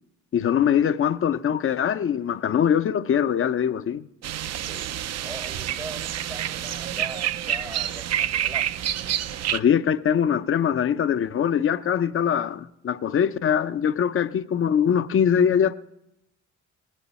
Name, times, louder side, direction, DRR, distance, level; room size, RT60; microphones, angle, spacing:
voice 1, 0.3-4.1 9.5-15.7, left 8 dB, 45° left, 0.6 m, -22 dB
sound 1, 4.2-9.6, right 11 dB, 60° right, 0.5 m, -28 dB
voice 2, 4.6-8.7, right 2 dB, 10° right, 0.7 m, -41 dB
18.5 x 10.5 x 4.2 m
cardioid pair, 90°, 30 cm